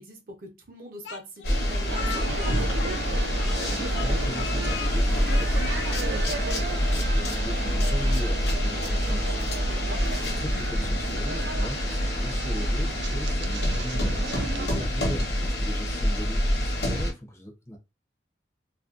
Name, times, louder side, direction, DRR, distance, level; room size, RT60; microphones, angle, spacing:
voice 1, 0.0-2.9 9.7-10.0 14.6-14.9, equal, 50° right, 0.7 m, -42 dB
Speech, 1.0-3.7 3.9-4.9 5.2-6.0, left 7 dB, 90° left, 0.4 m, -38 dB
sound 1, 1.4-17.1, equal, 65° left, 0.9 m, -26 dB
sound 2, 1.9-14.7, right 4 dB, 75° right, 0.4 m, -36 dB
voice 2, 3.5-9.9 10.2-17.8, equal, 15° left, 0.5 m, -39 dB
2.5 x 2.1 x 2.3 m
head